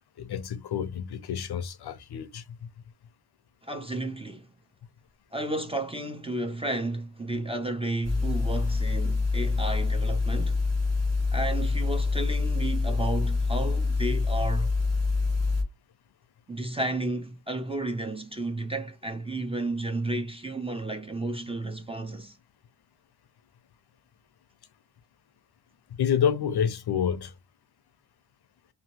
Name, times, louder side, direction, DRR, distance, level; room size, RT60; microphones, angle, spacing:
voice 1, 0.2-2.4 26.0-27.3, left 8 dB, 60° left, 0.5 m, -28 dB
voice 2, 3.6-4.5 5.3-10.6 11.3-14.7 16.5-22.4, right 2 dB, 15° right, 0.5 m, -32 dB
sound 1, 8.0-15.6, left 3 dB, 35° right, 1.0 m, -26 dB
2.8 x 2.6 x 2.8 m
wide cardioid pair, 110°, 45 cm